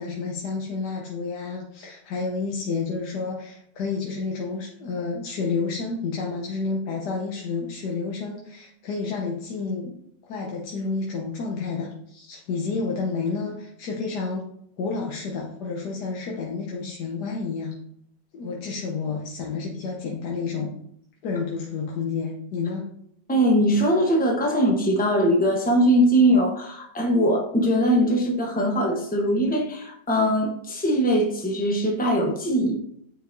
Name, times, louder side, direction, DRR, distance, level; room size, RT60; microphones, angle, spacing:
voice 1, 0.0-9.9 10.2-14.5 14.8-17.8 18.3-20.7 21.2-22.9, left 4 dB, 65° left, -1 dB, 1.4 m, -30 dB
voice 2, 23.3-32.7, equal, 10° left, 0 dB, 0.4 m, -21 dB
9.1 x 4.7 x 2.6 m, 0.69 s
omnidirectional pair, 2.0 m